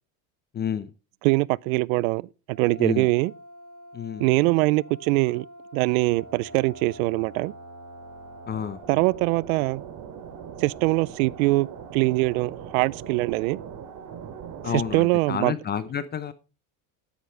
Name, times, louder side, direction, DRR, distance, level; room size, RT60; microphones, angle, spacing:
voice 1, 0.5-0.9 2.8-3.1 3.9-4.5 8.5-9.0 14.6-16.3, left 8 dB, 25° left, 0.8 m, -30 dB
voice 2, 1.2-3.3 4.2-5.5 5.7-7.5 8.9-9.8 10.6-11.7 11.9-13.6 14.7-15.5, right 22 dB, 85° right, 0.6 m, -23 dB
sound 1, 2.5-15.0, right 5 dB, 50° right, 2.7 m, -42 dB
13.0 x 10.5 x 3.3 m
supercardioid pair, 135°, 41 cm